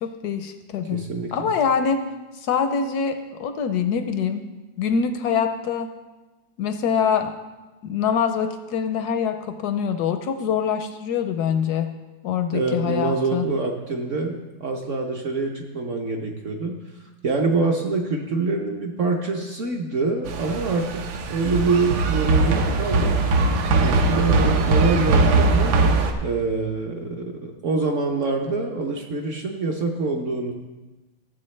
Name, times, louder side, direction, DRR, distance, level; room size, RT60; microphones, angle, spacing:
voice 1, 0.0-2.0 2.4-4.4 4.8-5.9 6.6-7.3 7.8-11.9 12.2-13.5, left 7 dB, 75° left, 8 dB, 0.9 m, -24 dB
voice 2, 0.9-1.5 12.5-16.8 17.2-23.3 23.8-25.7 26.2-30.5, right 3 dB, 60° right, 2 dB, 0.8 m, -25 dB
sound 1, 20.3-26.1, right 3 dB, 80° right, 1.5 m, -20 dB
14.0 x 7.3 x 3.2 m, 1.2 s
omnidirectional pair, 2.1 m